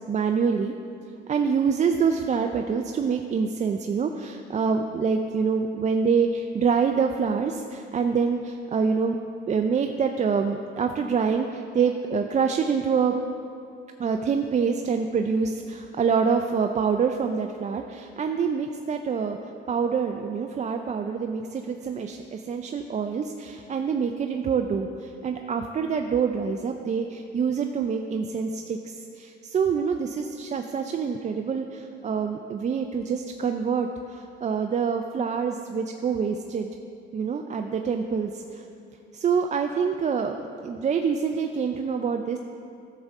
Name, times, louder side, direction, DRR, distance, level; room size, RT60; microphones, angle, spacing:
voice 1, 0.1-0.7 1.3-9.2 9.5-13.1 14.0-19.4 19.7-36.7 37.1-38.6 39.1-40.4 40.6-42.4, right 6 dB, 35° right, 5 dB, 0.4 m, -26 dB
11.5 x 6.6 x 3.6 m, 2.6 s
cardioid pair, 90°, 20 cm